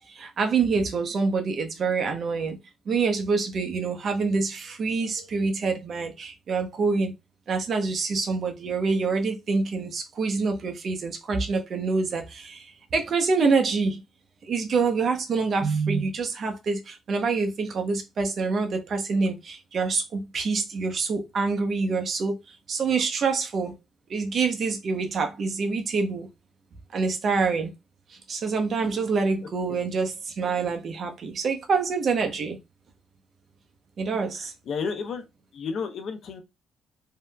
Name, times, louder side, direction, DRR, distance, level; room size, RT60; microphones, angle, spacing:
voice 1, 0.1-2.6 2.9-7.1 7.5-12.7 12.9-14.0 14.4-22.4 22.7-23.7 24.1-26.3 26.9-27.7 28.3-32.6 34.0-34.5, right 4 dB, 55° right, 0.8 m, -26 dB
voice 2, 34.7-35.2 35.5-36.4, left 5 dB, 65° left, 0.7 m, -31 dB
3.3 x 2.8 x 2.2 m
cardioid pair, 90°, 0 cm